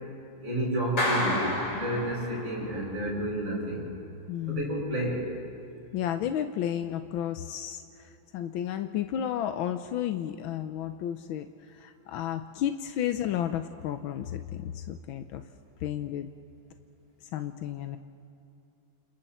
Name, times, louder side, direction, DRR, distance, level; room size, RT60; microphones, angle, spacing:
voice 1, 0.4-3.9 4.5-5.3, right 1 dB, 70° right, -6 dB, 6.7 m, -30 dB
Clapping, 1.0-2.7, left 1 dB, 65° left, 4.7 m, -30 dB
voice 2, 4.3-5.0 5.9-15.4 15.8-16.3 17.3-18.0, left 10 dB, 85° left, 9 dB, 1.5 m, -32 dB
30.0 x 28.0 x 4.3 m, 2.8 s
omnidirectional pair, 2.1 m